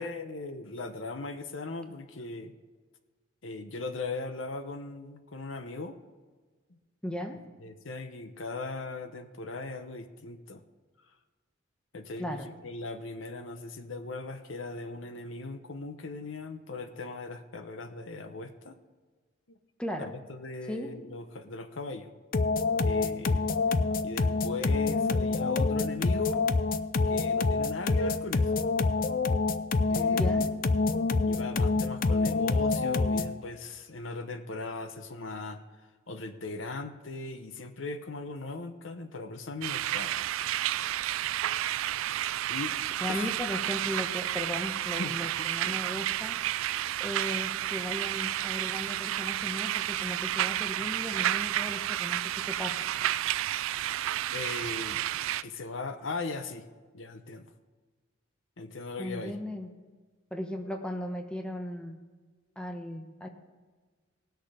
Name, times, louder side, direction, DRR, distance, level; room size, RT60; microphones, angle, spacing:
voice 1, 0.0-2.5 3.4-6.0 6.7-6.8 7.6-10.6 11.9-18.8 19.5-19.6 20.0-22.1 22.8-23.4 24.0-26.4 27.1-28.5 29.9-30.5 31.3-35.6 36.1-40.1 42.2-42.7 43.1-43.3 45.0-45.1 45.6-45.7 54.3-55.0 55.4-56.6 56.9-57.5 58.6-59.3, left 3 dB, 75° left, 8 dB, 0.9 m, -38 dB
voice 2, 7.0-7.4 12.2-12.4 19.8-20.1 20.7-20.9 30.1-30.5 43.0-46.4 47.0-52.7 59.0-59.7 60.3-62.0 62.6-63.3, left 1 dB, 5° left, 4 dB, 1.0 m, -36 dB
sound 1, 22.3-33.4, left 3 dB, 45° left, 0.5 m, -27 dB
sound 2, 39.6-55.4, right 13 dB, 90° right, 0.3 m, -31 dB
18.5 x 6.4 x 5.0 m, 1.4 s
head